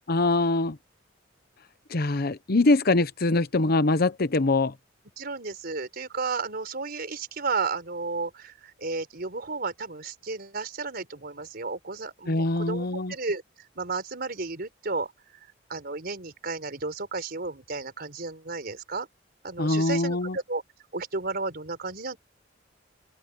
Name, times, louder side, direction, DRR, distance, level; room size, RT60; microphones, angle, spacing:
voice 1, 0.1-0.8 1.9-4.7 12.3-13.1 19.6-20.4, left 2 dB, 55° left, 0.9 m, -23 dB
voice 2, 5.2-13.4 13.8-15.1 15.7-19.1 19.4-20.6 20.9-22.2, right 3 dB, 55° right, 4.2 m, -33 dB
open air
head